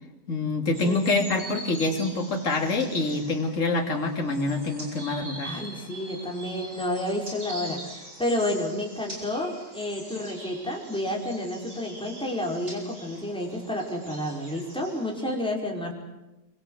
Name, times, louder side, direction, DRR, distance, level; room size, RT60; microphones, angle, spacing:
voice 1, 0.3-5.6, left 3 dB, 45° left, 3 dB, 3.1 m, -26 dB
sound 1, 0.7-15.4, right 1 dB, 80° right, 7.3 m, -43 dB
voice 2, 5.4-15.9, left 1 dB, 5° left, 0 dB, 4.9 m, -30 dB
26.5 x 24.0 x 7.8 m, 0.99 s
omnidirectional pair, 1.8 m